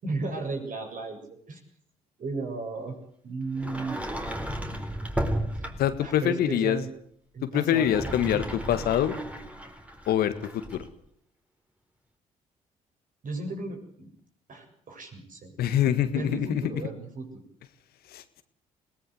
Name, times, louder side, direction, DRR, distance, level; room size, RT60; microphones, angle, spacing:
voice 1, 0.0-1.6 2.2-2.9 3.2-4.0 5.5-5.7 6.0-6.9 7.3-8.5 13.2-14.1 14.5-15.5 16.1-17.4, right 3 dB, 55° right, 3 dB, 7.3 m, -35 dB
Sliding door, 3.5-6.1 7.7-10.9, right 1 dB, 10° right, 4.1 m, -34 dB
voice 2, 5.8-6.8 7.4-9.2 10.1-10.8 15.6-16.6 18.1-18.2, left 11 dB, 70° left, 11 dB, 1.8 m, -25 dB
22.0 x 18.0 x 8.0 m, 0.65 s
hypercardioid pair, 45°, 17 cm